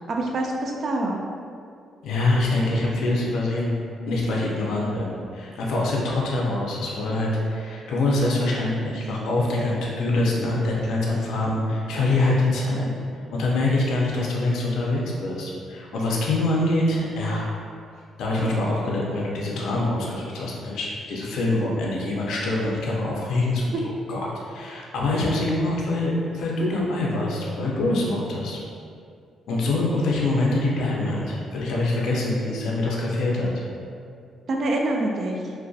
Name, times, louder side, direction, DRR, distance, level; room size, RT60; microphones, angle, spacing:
voice 1, 0.1-1.2 34.5-35.4, right 2 dB, 50° right, 0 dB, 0.3 m, -25 dB
voice 2, 2.0-3.8 4.1-12.9 13.3-17.5 18.2-28.6 29.5-33.6, left 2 dB, 80° left, -3 dB, 0.4 m, -24 dB
2.5 x 2.1 x 2.3 m, 2.4 s
cardioid pair, 90°, 0 cm